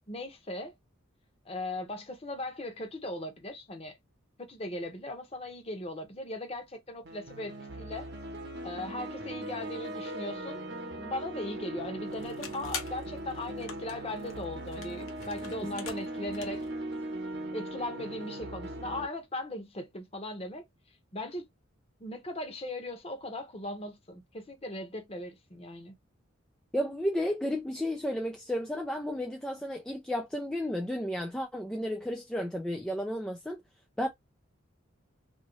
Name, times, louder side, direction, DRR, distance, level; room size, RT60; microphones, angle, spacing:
voice 1, 0.1-0.7 1.4-4.0 4.4-8.1 8.6-10.6 10.9-16.7 17.5-20.7 21.1-21.4 22.0-25.9, left 1 dB, 30° left, 0.9 m, -38 dB
sound 1, 7.0-19.1, right 1 dB, 55° right, 0.9 m, -39 dB
sound 2, 12.1-16.7, left 6 dB, 80° left, 1.0 m, -45 dB
voice 2, 26.7-33.6 34.0-34.1, equal, 5° left, 0.3 m, -32 dB
2.9 x 2.7 x 3.0 m
head